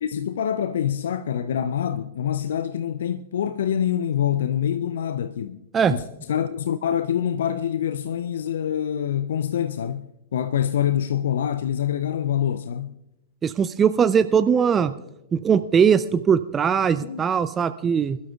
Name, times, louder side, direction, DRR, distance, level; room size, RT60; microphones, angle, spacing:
voice 1, 0.0-5.6 5.9-13.0 17.0-17.2, left 9 dB, 60° left, 0.4 m, -25 dB
voice 2, 13.4-14.9 15.3-18.2, right 7 dB, 20° right, 0.4 m, -20 dB
25.5 x 12.5 x 2.3 m
figure-of-eight pair, 100°, 0 cm